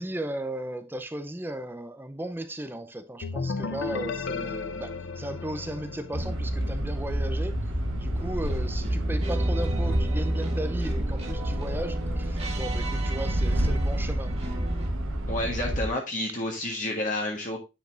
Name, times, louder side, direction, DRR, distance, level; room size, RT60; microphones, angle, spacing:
voice 1, 0.0-7.6 7.9-14.4, right 1 dB, 10° right, 0.6 m, -36 dB
sound 1, 3.2-6.9, left 4 dB, 70° left, 0.5 m, -34 dB
sound 2, 6.1-15.9, right 1 dB, 90° right, 1.3 m, -28 dB
sound 3, 8.2-14.9, right 2 dB, 30° right, 1.5 m, -38 dB
voice 2, 15.3-17.6, left 1 dB, 40° left, 1.4 m, -30 dB
9.1 x 5.2 x 2.6 m
head